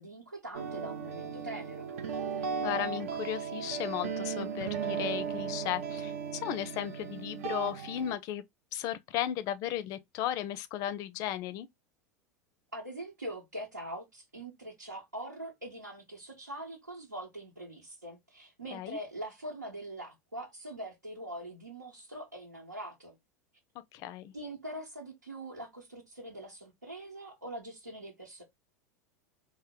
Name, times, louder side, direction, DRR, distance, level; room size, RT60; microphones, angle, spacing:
voice 1, 0.0-1.9 12.7-23.1 24.3-28.4, right 1 dB, 85° right, 1.1 m, -43 dB
sound 1, 0.5-8.2, right 6 dB, 60° right, 0.6 m, -36 dB
voice 2, 2.6-8.4 8.7-11.7 18.7-19.0 23.9-24.3, left 11 dB, 40° left, 0.5 m, -35 dB
3.7 x 2.1 x 3.5 m
figure-of-eight pair, 80°, 9 cm